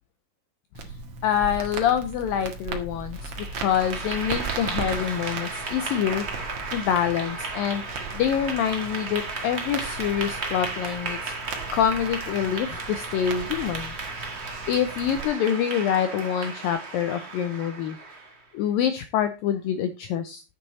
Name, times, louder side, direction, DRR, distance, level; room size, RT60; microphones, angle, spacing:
Crackle, 0.7-15.2, right 4 dB, 55° right, 1.8 m, -38 dB
voice 1, 1.2-6.3 6.7-7.8 8.1-11.3 11.7-13.9 14.7-18.0 18.5-20.4, left 9 dB, 80° left, 9 dB, 2.1 m, -26 dB
Clapping / Applause, 3.2-18.4, right 3 dB, 80° right, 0.5 m, -34 dB
10.0 x 8.1 x 4.1 m, 0.30 s
omnidirectional pair, 4.8 m